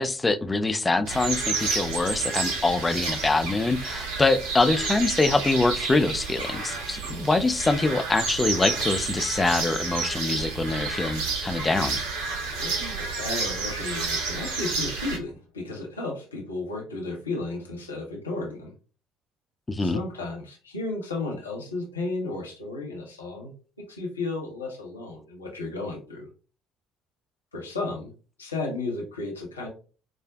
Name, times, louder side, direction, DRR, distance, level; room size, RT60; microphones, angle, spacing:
voice 1, 0.0-12.0 19.7-20.0, left 3 dB, 20° left, 0.4 m, -24 dB
sound 1, 1.1-15.2, right 4 dB, 65° right, 0.7 m, -30 dB
voice 2, 12.5-18.7 19.8-23.5 23.8-26.3 27.5-28.1 28.4-29.7, left 3 dB, 85° left, 0.7 m, -33 dB
4.7 x 2.1 x 2.3 m
figure-of-eight pair, 55°, 0 cm